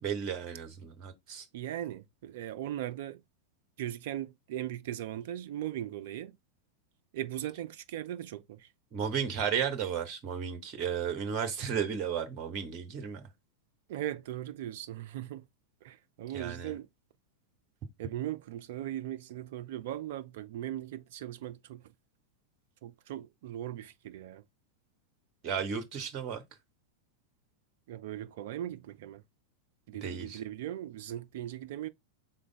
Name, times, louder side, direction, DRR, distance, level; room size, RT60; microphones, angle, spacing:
voice 1, 0.0-1.5 8.9-13.2 16.3-16.8 25.4-26.4 30.0-30.4, right 7 dB, 35° right, 0.8 m, -34 dB
voice 2, 1.5-3.2 3.8-6.4 7.1-8.7 13.9-15.5 15.8-16.9 18.0-21.8 22.8-24.4 27.9-29.2 29.9-31.9, right 12 dB, 55° right, 0.3 m, -39 dB
3.9 x 3.4 x 3.8 m
figure-of-eight pair, 90°, 0 cm